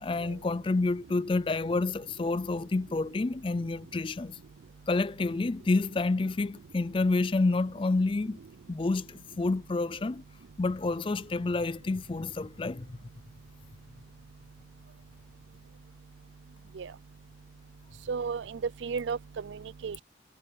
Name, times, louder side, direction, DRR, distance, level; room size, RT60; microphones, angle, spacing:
voice 1, 0.0-4.4 4.9-8.4 8.7-10.2 10.6-13.0, left 3 dB, 25° left, 0.4 m, -29 dB
voice 2, 18.1-20.0, right 5 dB, 75° right, 0.4 m, -34 dB
head